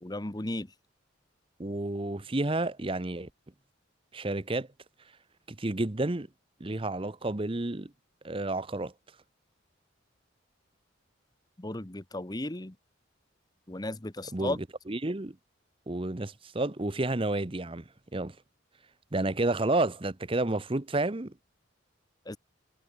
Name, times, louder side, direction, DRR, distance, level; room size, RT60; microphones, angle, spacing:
voice 1, 0.0-0.7 11.6-12.7 13.7-14.6 22.3-22.4, left 1 dB, 20° left, 1.1 m, -35 dB
voice 2, 1.6-3.3 4.1-4.7 5.5-6.3 6.6-7.9 8.2-8.9 14.3-14.6 14.9-15.4 15.9-17.8 18.1-18.4 19.1-21.3, right 2 dB, 25° right, 0.9 m, -30 dB
head